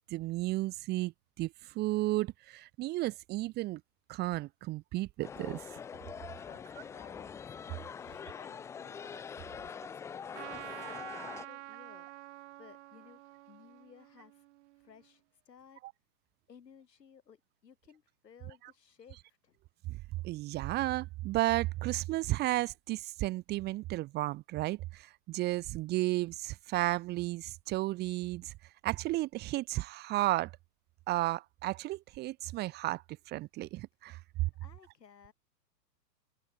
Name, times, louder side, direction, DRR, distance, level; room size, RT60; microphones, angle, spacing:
voice 1, 0.1-3.8 4.1-5.8 15.8-15.9 19.9-20.0 20.2-28.5 28.8-30.5 31.1-34.2, right 18 dB, 20° right, 0.9 m, -33 dB
sound 1, 5.2-11.5, left 7 dB, 5° left, 0.5 m, -44 dB
voice 2, 6.4-7.4 7.9-9.0 9.5-14.4 14.8-15.8 16.5-19.6 34.5-35.3, left 7 dB, 80° left, 5.0 m, -58 dB
Trumpet, 10.3-15.0, right 20 dB, 45° right, 3.6 m, -48 dB
hypercardioid pair, 130°, 48 cm